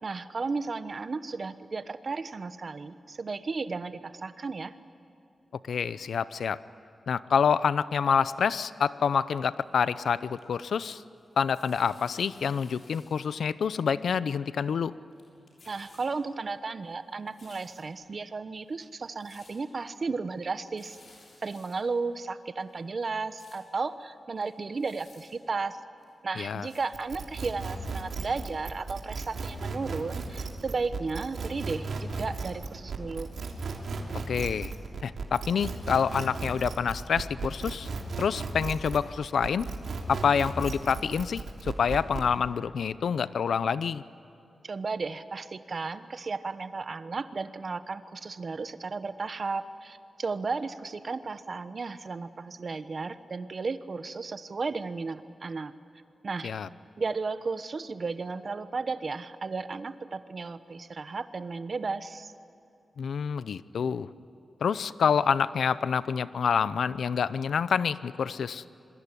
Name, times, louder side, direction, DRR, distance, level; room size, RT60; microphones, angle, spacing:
voice 1, 0.0-4.7 15.6-21.0 21.4-25.8 26.2-33.3 44.6-55.7 56.2-56.5 57.0-62.3, right 4 dB, 45° right, 11 dB, 1.1 m, -34 dB
voice 2, 5.7-6.6 7.1-11.0 11.4-14.9 26.4-26.7 34.3-34.7 35.0-37.9 38.2-39.7 40.1-44.0 56.4-56.7 63.0-64.1 64.6-68.6, left 6 dB, 85° left, 15 dB, 0.7 m, -27 dB
sound 1, 9.7-10.9 11.2-13.2 13.5-13.6 14.3-14.9 15.1-16.1 16.5-18.0 18.5-18.6 18.9-19.6 19.9-20.0 20.3-20.4 20.6-21.8 22.2-22.3 22.6-23.6 24.0-24.1 24.3-25.3 26.0-26.1 26.5-26.8 27.4-27.5 28.2-28.3 28.7-28.8 29.0-29.1, left 3 dB, 60° left, 7.2 m, -57 dB
sound 2, 26.9-39.1 39.4-42.3, right 4 dB, 70° right, 3.1 m, -35 dB
27.0 x 21.5 x 10.0 m, 2.7 s
wide cardioid pair, 130°, 0 cm